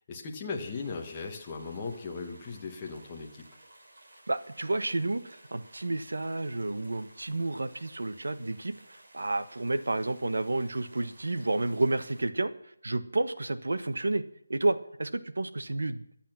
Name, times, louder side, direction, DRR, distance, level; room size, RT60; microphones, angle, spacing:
voice 1, 0.1-3.4, left 4 dB, 10° left, 0 dB, 1.3 m, -38 dB
sound 1, 0.5-12.2, right 1 dB, 45° right, 3.4 m, -56 dB
voice 2, 4.3-14.2 14.5-16.2, right 2 dB, 80° right, 10 dB, 1.4 m, -31 dB
23.0 x 9.0 x 6.2 m, 0.77 s
figure-of-eight pair, 180°, 0 cm